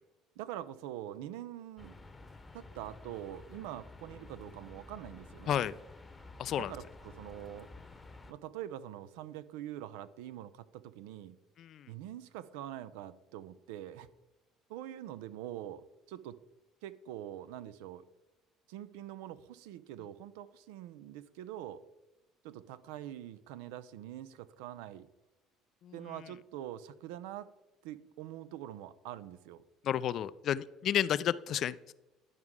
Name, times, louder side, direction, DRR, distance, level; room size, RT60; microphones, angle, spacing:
voice 1, 0.4-2.0 2.5-5.6 6.6-7.7 8.3-11.4 11.9-14.1 14.7-16.4 16.8-18.0 18.7-21.8 22.4-25.1 25.9-27.5 27.8-29.6, right 12 dB, 80° right, 15 dB, 0.4 m, -44 dB
sound 1, 1.8-8.3, left 3 dB, 20° left, 0.9 m, -52 dB
voice 2, 6.4-6.7 11.6-11.9 25.8-25.9 29.8-31.9, left 10 dB, 55° left, 17 dB, 0.3 m, -32 dB
11.0 x 4.8 x 3.6 m, 1.0 s
hypercardioid pair, 70°, 0 cm